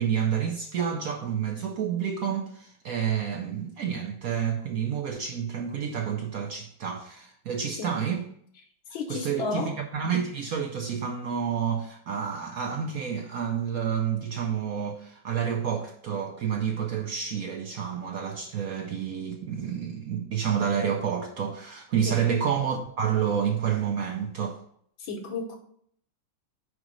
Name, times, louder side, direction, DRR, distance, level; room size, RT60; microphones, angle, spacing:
voice 1, 0.0-8.2 9.1-24.6, right 8 dB, 65° right, 0.9 m, -29 dB
voice 2, 8.9-9.8 22.1-22.2 25.0-25.6, left 3 dB, 80° left, 1.9 m, -32 dB
5.1 x 5.0 x 6.1 m
omnidirectional pair, 2.1 m